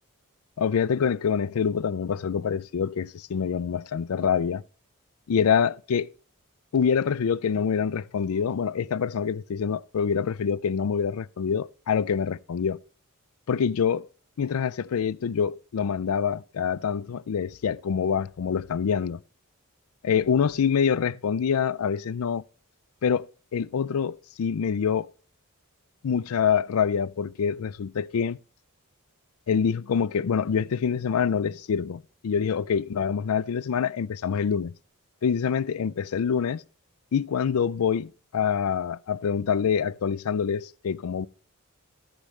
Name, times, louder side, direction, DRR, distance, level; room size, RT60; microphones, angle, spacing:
voice 1, 0.6-4.6 5.3-6.1 6.7-12.8 13.5-14.1 14.4-19.2 20.0-22.4 23.0-23.3 23.5-25.1 26.0-28.4 29.5-34.7 35.2-36.6 37.1-41.3, left 7 dB, 75° left, 0.4 m, -26 dB
13.0 x 10.0 x 3.1 m
head